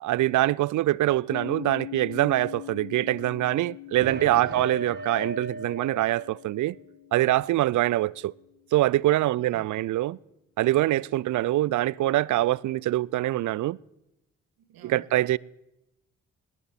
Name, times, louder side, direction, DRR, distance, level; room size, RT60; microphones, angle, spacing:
voice 1, 0.0-6.8 7.1-8.3 8.7-10.2 10.6-13.8 14.8-15.4, right 15 dB, 50° right, 0.5 m, -24 dB
Piano, 1.3-8.5, left 18 dB, 60° left, 1.0 m, -43 dB
sound 1, 4.0-6.7, right 1 dB, 25° right, 1.6 m, -37 dB
voice 2, 4.4-4.7 9.3-9.7 14.6-15.0, right 5 dB, 70° right, 2.0 m, -50 dB
19.0 x 7.2 x 9.6 m
hypercardioid pair, 40°, 38 cm